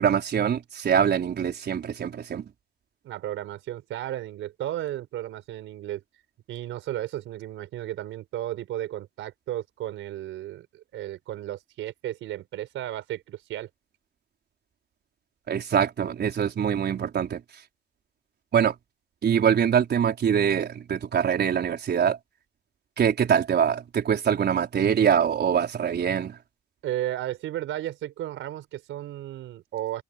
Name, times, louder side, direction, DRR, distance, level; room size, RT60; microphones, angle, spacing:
voice 1, 0.0-2.4 15.5-17.4 18.5-18.7 19.2-22.2 23.0-26.4, right 8 dB, 55° right, 4.7 m, -24 dB
voice 2, 3.0-6.0 6.5-13.7 26.8-30.0, right 13 dB, 85° right, 4.5 m, -34 dB
open air
cardioid pair, 90°, 20 cm